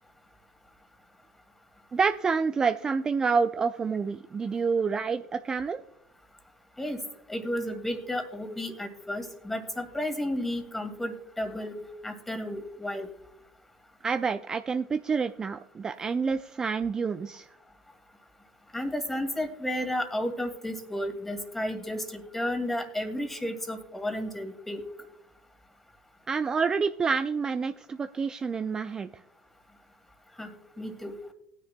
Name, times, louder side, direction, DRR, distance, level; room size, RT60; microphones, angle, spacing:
voice 1, 1.9-5.8 14.0-17.5 26.3-29.1, right 5 dB, 25° right, 9 dB, 0.4 m, -28 dB
voice 2, 7.3-13.1 18.7-24.8 30.4-31.1, left 1 dB, 10° left, 6 dB, 2.1 m, -32 dB
18.0 x 10.0 x 2.2 m, 0.76 s
supercardioid pair, 90°, 3 cm